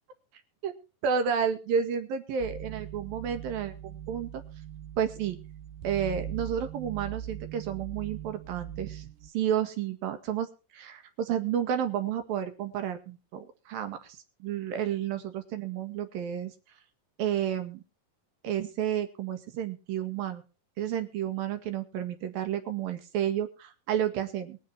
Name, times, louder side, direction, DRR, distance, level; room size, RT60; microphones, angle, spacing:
voice 1, 1.0-4.4 5.0-5.4 5.8-9.1 9.3-16.5 17.2-17.8 18.4-20.4 20.8-24.6, right 8 dB, 90° right, 8 dB, 3.6 m, -31 dB
sound 1, 2.4-9.3, right 10 dB, 75° right, 2.6 m, -40 dB
22.0 x 7.5 x 4.4 m, 0.32 s
omnidirectional pair, 4.0 m